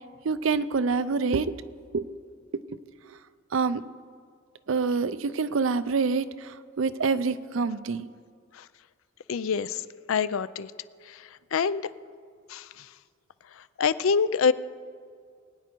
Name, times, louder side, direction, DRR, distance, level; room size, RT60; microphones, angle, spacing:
voice 1, 0.2-1.5 1.9-2.1 3.5-3.8 4.7-8.1, right 4 dB, 75° right, 14 dB, 0.5 m, -26 dB
voice 2, 9.3-9.7 10.1-10.7 11.5-11.8 12.5-12.6 13.8-14.5, left 6 dB, 85° left, 16 dB, 0.4 m, -24 dB
21.0 x 9.4 x 4.5 m, 2.2 s
head